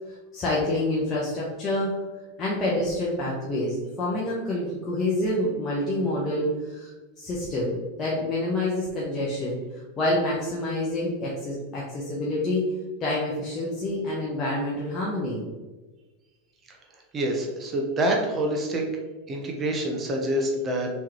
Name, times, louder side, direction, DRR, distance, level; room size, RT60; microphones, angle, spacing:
voice 1, 0.3-1.9 2.4-6.9 7.2-7.7 8.0-9.5 10.0-12.7 13.0-15.4, left 1 dB, 30° left, -5 dB, 0.9 m, -27 dB
voice 2, 17.1-18.8 19.3-20.9, right 1 dB, 30° right, 1 dB, 0.7 m, -26 dB
3.6 x 3.2 x 2.9 m, 1.2 s
hypercardioid pair, 105°, 0 cm